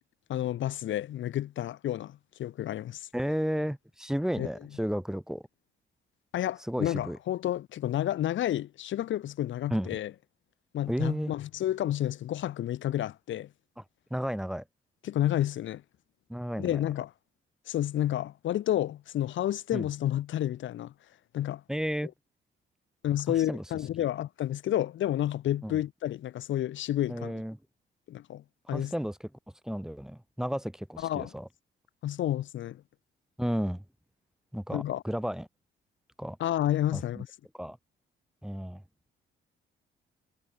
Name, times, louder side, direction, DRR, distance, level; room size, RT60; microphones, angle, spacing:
voice 1, 0.3-3.1 4.4-4.5 6.3-10.1 10.7-13.5 15.0-15.8 16.6-17.1 17.7-20.9 21.3-21.6 23.0-27.4 28.1-28.4 28.7-28.9 31.0-31.3 32.0-32.8 34.7-35.0 36.4-37.3, left 12 dB, 75° left, 1.7 m, -30 dB
voice 2, 3.1-5.4 6.7-7.2 9.7-9.9 10.9-11.3 14.1-14.6 16.3-16.8 19.7-19.9 21.7-22.1 23.3-23.6 25.6-25.8 27.1-27.6 28.7-29.2 29.6-31.5 33.4-33.8 34.5-35.5 36.2-36.4 36.9-37.2 37.6-37.8 38.4-38.8, equal, 5° right, 1.8 m, -32 dB
cardioid pair, 90°, 20 cm